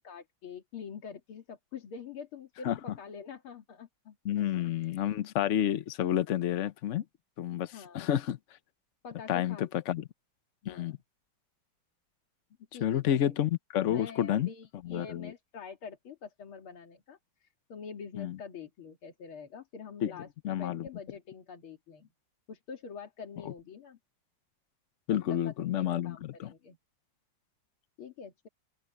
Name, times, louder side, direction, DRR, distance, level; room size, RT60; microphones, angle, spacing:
voice 1, 0.0-5.1 7.7-8.0 9.0-9.7 10.6-10.9 12.7-13.3 13.9-22.1 22.5-24.0 25.3-26.8 28.0-28.5, left 6 dB, 90° left, 3.0 m, -46 dB
voice 2, 4.2-7.0 7.4-8.4 9.3-10.0 10.7-11.0 12.8-14.5 14.8-15.3 18.2-18.4 20.0-20.1 20.4-20.9 25.1-26.5, left 11 dB, 60° left, 0.8 m, -30 dB
open air
omnidirectional pair, 2.3 m